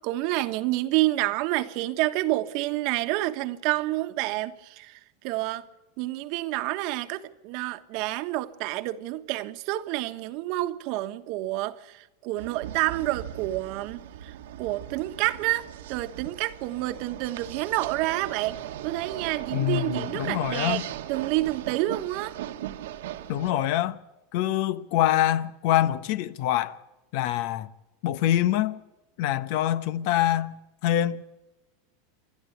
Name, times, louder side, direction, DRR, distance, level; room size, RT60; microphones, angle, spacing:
voice 1, 0.0-5.7 6.0-20.8 21.1-22.4, right 17 dB, 55° right, 1.3 m, -29 dB
sound 1, 12.4-23.5, right 12 dB, 80° right, 1.5 m, -38 dB
voice 2, 19.5-20.8 23.3-24.0 24.3-26.8 27.1-27.7 28.0-28.8 29.2-30.6 30.8-31.2, left 12 dB, 60° left, 1.0 m, -25 dB
27.0 x 12.0 x 8.1 m
supercardioid pair, 120°, 0 cm